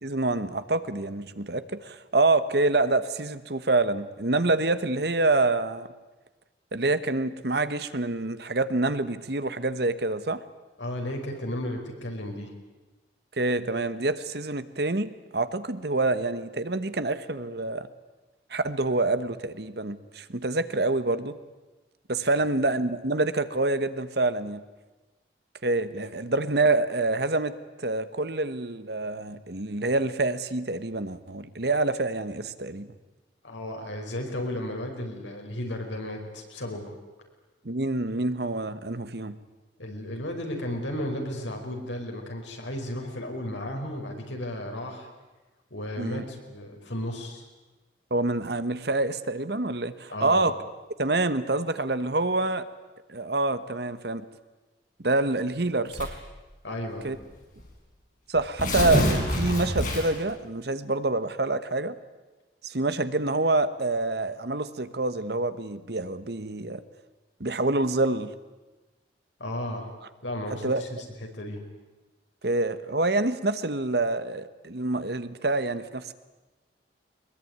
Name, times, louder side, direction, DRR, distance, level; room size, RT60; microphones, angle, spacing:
voice 1, 0.0-5.9 6.7-10.4 13.4-17.9 18.5-21.4 22.1-24.6 25.6-32.9 37.6-39.4 46.0-46.2 48.1-50.5 51.0-52.7 53.1-54.2 55.0-56.2 57.0-57.2 58.3-62.0 62.6-66.8 67.4-68.3 70.5-70.8 72.4-76.1, right 2 dB, 60° right, 12 dB, 1.2 m, -27 dB
voice 2, 10.8-12.6 33.4-36.9 39.8-45.1 45.7-47.4 50.1-50.4 56.6-57.1 69.4-69.9 70.2-70.9 71.2-71.6, left 1 dB, 80° left, 2 dB, 5.2 m, -34 dB
Tearing, 55.9-56.3 57.2-57.3 57.6-57.7 58.4-60.3, equal, 45° left, 5.6 m, -26 dB
22.0 x 21.5 x 9.5 m, 1.2 s
head